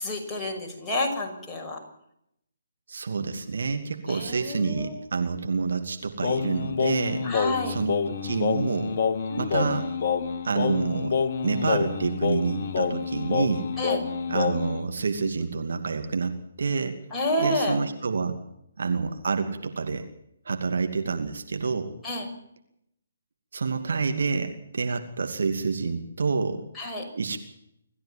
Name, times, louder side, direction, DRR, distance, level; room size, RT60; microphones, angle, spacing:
voice 1, 0.0-1.8 4.1-4.9 7.2-7.8 9.3-9.7 13.8-14.0 17.1-17.8 22.0-22.3 26.8-27.0, left 1 dB, 10° left, -3 dB, 6.4 m, -29 dB
voice 2, 2.9-9.0 9.4-9.9 10.4-13.7 14.3-17.0 17.4-18.4 18.8-20.1 20.4-22.0 23.5-26.7 27.1-27.4, right 4 dB, 65° right, 6 dB, 2.5 m, -28 dB
Singing, 6.2-14.8, left 6 dB, 45° left, 1.6 m, -27 dB
27.0 x 14.5 x 7.5 m, 0.76 s
figure-of-eight pair, 135°, 0 cm